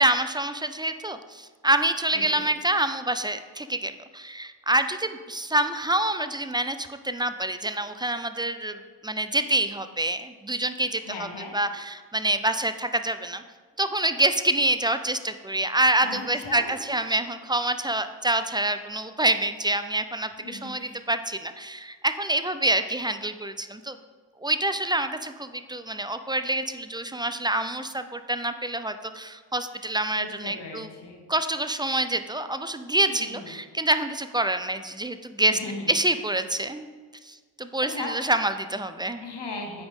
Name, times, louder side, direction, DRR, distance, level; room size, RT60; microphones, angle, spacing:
voice 1, 0.0-11.3 11.5-13.4 13.8-23.9 24.4-30.9 31.3-35.6 35.9-36.9 37.2-39.2, right 1 dB, 10° right, 10 dB, 0.3 m, -26 dB
voice 2, 2.1-2.5 11.0-11.5 16.0-16.8 17.1-17.2 20.4-21.0 30.1-31.2 33.1-33.5 35.5-35.9 37.9-38.3 39.2-39.9, left 3 dB, 55° left, 1 dB, 1.5 m, -37 dB
8.1 x 5.0 x 3.6 m, 1.5 s
supercardioid pair, 45°, 48 cm